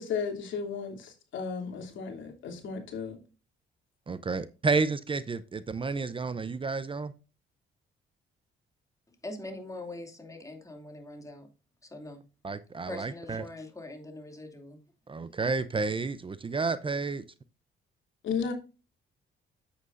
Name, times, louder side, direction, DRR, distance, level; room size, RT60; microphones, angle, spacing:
voice 1, 0.0-3.2 18.2-18.5, left 6 dB, 75° left, 2.9 m, -34 dB
voice 2, 4.1-7.1 12.4-13.4 15.1-17.2, right 4 dB, 25° right, 0.6 m, -31 dB
voice 3, 9.1-11.5 11.8-12.2 12.9-14.8 15.2-15.3, left 2 dB, 15° left, 2.6 m, -43 dB
9.5 x 8.1 x 2.6 m
cardioid pair, 90°, 20 cm